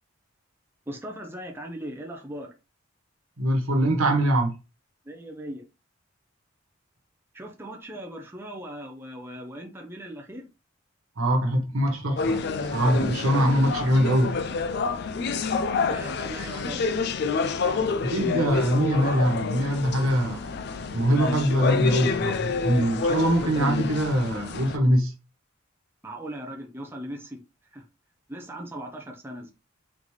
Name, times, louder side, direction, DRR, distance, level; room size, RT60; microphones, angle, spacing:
voice 1, 0.9-2.5 5.1-5.6 7.3-10.5 15.9-17.1 26.0-27.4 27.7-27.8 28.3-29.5, right 1 dB, 10° right, 0.6 m, -38 dB
voice 2, 3.4-4.5 11.2-12.4 12.7-14.4 18.0-20.4 20.8-25.1, right 1 dB, 85° right, 1.2 m, -23 dB
sound 1, 12.2-24.8, left 4 dB, 50° left, 0.4 m, -28 dB
3.9 x 3.5 x 3.2 m
head